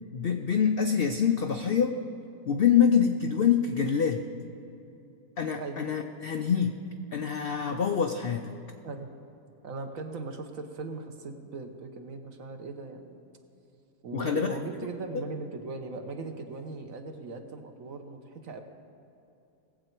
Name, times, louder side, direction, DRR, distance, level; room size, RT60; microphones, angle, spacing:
voice 1, 0.1-1.9 2.5-4.2 5.4-6.7 7.1-8.5 14.1-14.6, left 7 dB, 80° left, 5 dB, 0.5 m, -25 dB
voice 2, 9.6-13.2 14.0-18.6, right 3 dB, 60° right, 5 dB, 1.2 m, -39 dB
19.0 x 7.7 x 4.5 m, 2.8 s
omnidirectional pair, 1.7 m